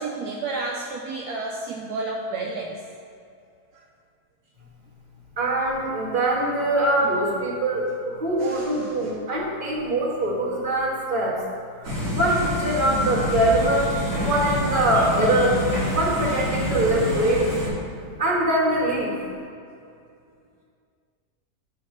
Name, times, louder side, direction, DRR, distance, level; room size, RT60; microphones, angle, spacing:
voice 1, 0.0-2.7 8.4-9.1, right 3 dB, 75° right, -1 dB, 1.1 m, -31 dB
voice 2, 5.4-7.8 8.1-11.3 11.8-15.6 15.9-17.4 18.2-19.1, right 1 dB, 30° right, -6 dB, 1.6 m, -23 dB
sound 1, 11.8-17.7, left 1 dB, 60° right, 2.1 m, -27 dB
9.3 x 3.1 x 5.9 m, 2.4 s
omnidirectional pair, 1.7 m